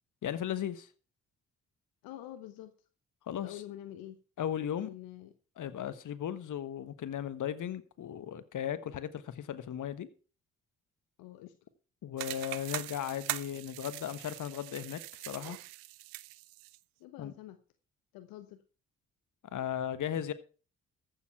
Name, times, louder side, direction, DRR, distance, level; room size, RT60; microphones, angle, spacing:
voice 1, 0.2-0.9 3.3-3.5 4.4-4.9 5.6-10.1 12.0-15.0 15.3-15.6 17.2-17.3 19.5-20.3, left 10 dB, 60° left, 1.4 m, -36 dB
voice 2, 2.0-2.7 3.3-4.2 4.8-5.3 11.2-11.5 17.0-17.6 18.1-18.6, left 13 dB, 75° left, 1.0 m, -46 dB
sound 1, 12.2-16.8, right 21 dB, 80° right, 0.6 m, -42 dB
14.5 x 7.1 x 5.8 m
hypercardioid pair, 45°, 35 cm